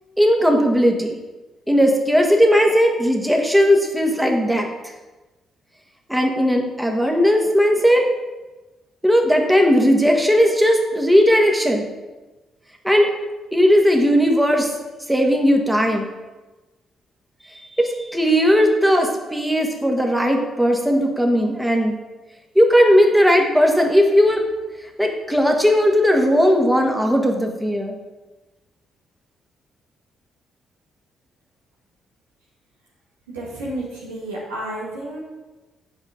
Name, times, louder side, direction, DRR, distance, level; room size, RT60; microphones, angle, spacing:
voice 1, 0.2-1.2 1.7-4.7 6.1-8.0 9.0-11.8 12.8-13.1 13.5-14.7 15.1-16.1 17.8-22.0 22.5-24.4 25.0-27.9, equal, 5° right, 2 dB, 1.7 m, -17 dB
voice 2, 33.3-35.2, right 1 dB, 90° right, -5 dB, 2.0 m, -31 dB
8.3 x 5.2 x 5.1 m, 1.1 s
hypercardioid pair, 45°, 0 cm